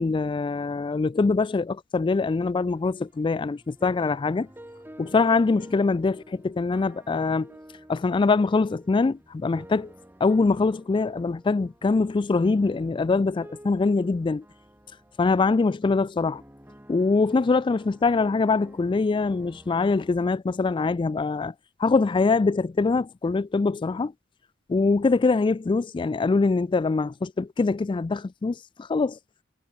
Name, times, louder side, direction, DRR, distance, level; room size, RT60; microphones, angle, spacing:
voice 1, 0.0-4.5 5.0-7.6 7.9-9.9 10.2-14.4 15.2-16.4 16.9-21.5 21.8-24.1 24.7-29.2, left 4 dB, 25° left, 0.3 m, -23 dB
sound 1, 2.6-20.2, equal, 10° right, 5.2 m, -50 dB
head